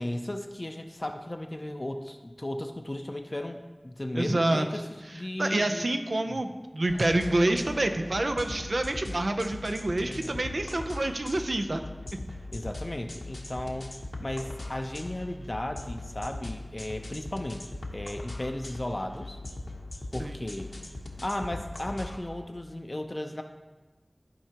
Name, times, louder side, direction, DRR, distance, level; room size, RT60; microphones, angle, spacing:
voice 1, 0.0-5.9 6.3-6.4 10.0-10.4 12.5-13.9 14.2-17.6 17.9-19.4 20.1-20.7 21.2-23.4, left 1 dB, 45° left, 5 dB, 0.5 m, -35 dB
voice 2, 4.1-4.7 5.4-11.8 20.2-20.4, right 2 dB, 85° right, 6 dB, 0.6 m, -27 dB
sound 1, 6.9-22.2, left 2 dB, 80° left, 0.9 m, -40 dB
13.5 x 4.6 x 2.9 m, 1.2 s
wide cardioid pair, 50°, 0 cm